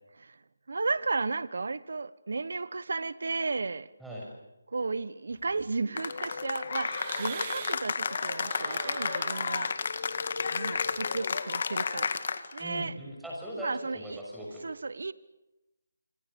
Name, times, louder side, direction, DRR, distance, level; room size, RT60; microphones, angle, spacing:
voice 1, 0.7-3.9 4.7-9.7 10.5-12.1 12.5-12.9 13.6-14.2 14.6-15.1, right 3 dB, 65° right, 18 dB, 1.1 m, -34 dB
sound 1, 5.3-7.9 8.3-11.3, right 7 dB, 30° right, 2.5 m, -44 dB
Cheering / Applause, 6.0-12.7, left 5 dB, 50° left, 1.9 m, -32 dB
voice 2, 12.6-14.6, equal, ahead, -4 dB, 6.6 m, -39 dB
26.5 x 26.0 x 7.0 m, 1.0 s
figure-of-eight pair, 160°, 0 cm